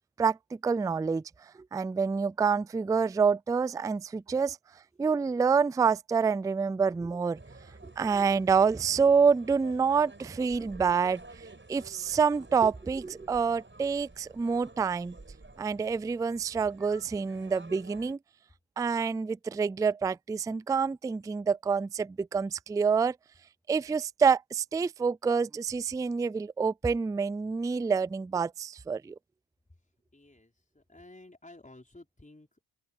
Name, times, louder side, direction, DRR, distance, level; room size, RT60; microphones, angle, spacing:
voice 1, 0.2-1.2 1.7-4.6 5.0-7.4 7.8-15.2 15.6-18.2 18.8-23.2 23.7-29.1, right 5 dB, 10° right, 0.3 m, -27 dB
sound 1, 7.3-18.1, right 2 dB, 25° right, 5.8 m, -51 dB
voice 2, 30.1-32.6, left 2 dB, 15° left, 5.0 m, -53 dB
open air
supercardioid pair, 50°, 45 cm